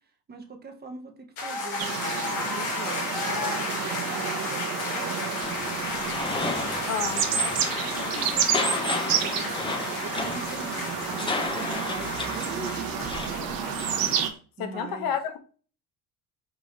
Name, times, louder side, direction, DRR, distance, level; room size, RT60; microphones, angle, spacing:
voice 1, 0.3-1.1 1.4-2.0 2.5-6.3 7.1-7.3 7.7-13.5 14.6-15.1, right 4 dB, 25° right, 4 dB, 0.7 m, -42 dB
sound 1, 1.4-14.0, left 3 dB, 80° left, 1.9 m, -33 dB
sound 2, 1.8-14.3, right 8 dB, 65° right, 0.9 m, -30 dB
sound 3, 5.4-14.2, left 3 dB, 15° left, 0.4 m, -34 dB
voice 2, 6.9-7.2 14.6-15.4, left 7 dB, 65° left, 8 dB, 0.8 m, -30 dB
5.0 x 2.6 x 3.0 m, 0.39 s
cardioid pair, 135°, 38 cm